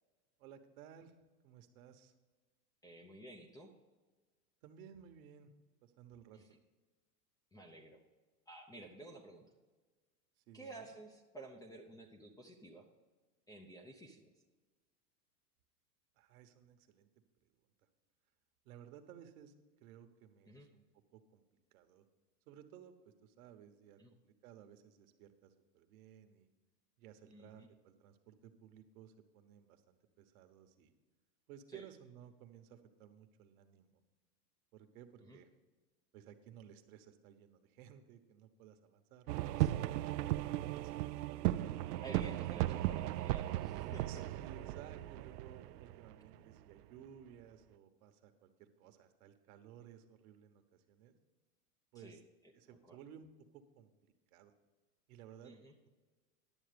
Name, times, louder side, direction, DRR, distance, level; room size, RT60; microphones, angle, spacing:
voice 1, 0.4-1.2 1.4-2.1 4.6-5.5 5.8-6.4 10.5-10.9 16.2-17.1 18.6-19.5 19.8-20.8 21.1-21.4 21.7-22.0 22.5-26.5 27.0-30.9 31.5-33.9 34.7-35.5 36.1-41.4 42.6-42.9 44.0-51.2 51.9-52.2 52.5-54.5 55.1-55.5, right 9 dB, 60° right, 8 dB, 1.3 m, -57 dB
voice 2, 2.8-3.7 6.3-6.5 7.5-8.0 8.5-9.5 10.5-12.9 13.5-14.2 20.5-20.7 24.0-24.1 27.3-27.7 31.7-31.8 35.2-35.4 39.5-39.8 42.0-44.2 51.9-52.2 52.9-53.0 55.4-55.7, right 2 dB, 10° left, 3 dB, 0.5 m, -52 dB
sound 1, 39.3-46.8, right 15 dB, 75° right, 0.6 m, -36 dB
11.0 x 7.2 x 5.1 m, 1.3 s
supercardioid pair, 130°, 48 cm